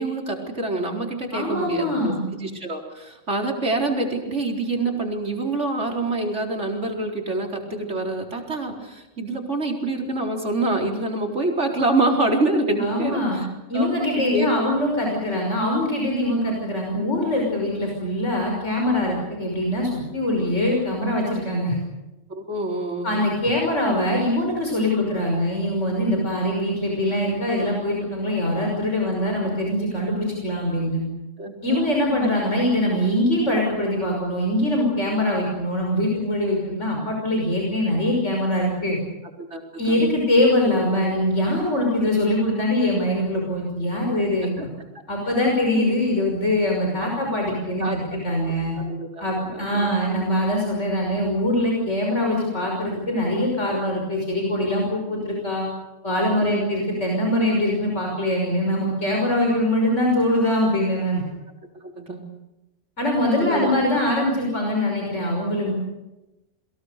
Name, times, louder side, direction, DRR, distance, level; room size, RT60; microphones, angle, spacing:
voice 1, 0.0-13.5 13.7-14.5 22.4-23.2 31.4-31.9 32.2-32.3 39.4-39.6 39.9-40.0 44.6-44.7 45.7-46.0 47.8-48.0 48.3-48.4 48.8-49.9 56.4-56.8 61.8-62.2 63.4-63.7, right 2 dB, 70° right, 1 dB, 4.6 m, -26 dB
voice 2, 1.3-2.2 12.8-13.4 13.7-21.8 23.0-31.0 31.6-39.0 39.8-44.7 45.1-48.8 49.2-55.7 56.0-61.2 63.0-65.7, left 1 dB, 75° left, 0 dB, 6.2 m, -23 dB
29.5 x 23.0 x 6.7 m, 0.99 s
omnidirectional pair, 1.2 m